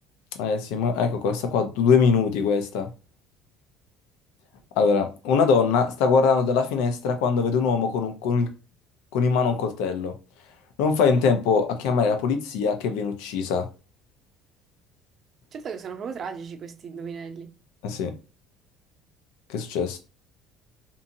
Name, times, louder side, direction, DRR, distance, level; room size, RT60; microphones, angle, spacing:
voice 1, 0.4-2.9 4.8-8.5 9.1-10.1 10.8-13.7 17.8-18.1 19.5-20.0, left 5 dB, 85° left, 0.6 m, -22 dB
voice 2, 15.5-17.6, right 6 dB, 40° right, 0.5 m, -36 dB
2.7 x 2.6 x 2.6 m
cardioid pair, 125°, 0 cm